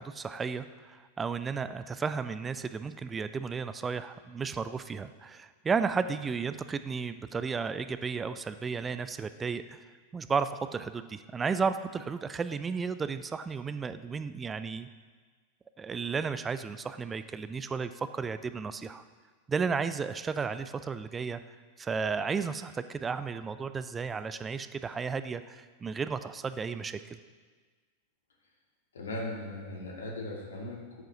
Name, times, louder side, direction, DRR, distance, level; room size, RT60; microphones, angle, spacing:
voice 1, 0.0-9.8 10.1-14.9 15.8-19.0 19.5-21.4 21.8-27.2, right 5 dB, 15° right, 12 dB, 0.4 m, -33 dB
voice 2, 28.9-31.0, left 1 dB, 65° left, -2 dB, 2.2 m, -38 dB
13.5 x 10.0 x 2.9 m, 1.5 s
figure-of-eight pair, 90°, 0 cm